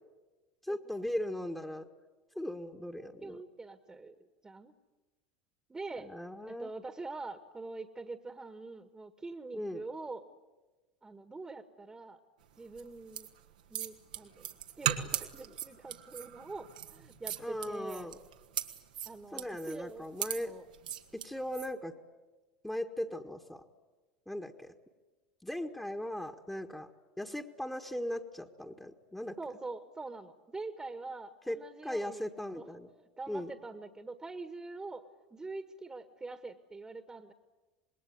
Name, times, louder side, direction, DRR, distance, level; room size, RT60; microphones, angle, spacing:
voice 1, 0.6-1.9 2.4-3.4 6.0-6.7 9.5-9.8 17.4-18.2 19.3-20.5 21.1-21.9 22.6-23.6 24.3-24.7 25.4-26.9 27.2-29.4 31.5-32.9 33.3-33.5, left 1 dB, 5° left, 3 dB, 1.8 m, -38 dB
voice 2, 3.2-4.2 4.4-4.7 5.7-6.1 6.5-10.3 11.0-12.2 12.6-13.3 13.7-18.1 19.1-20.1 20.4-20.6 29.4-32.3 32.5-35.0 35.3-37.3, right 3 dB, 15° right, 9 dB, 1.7 m, -44 dB
sound 1, 12.7-21.7, right 10 dB, 75° right, 1.8 m, -38 dB
26.5 x 21.0 x 9.5 m, 1.2 s
hypercardioid pair, 75°, 4 cm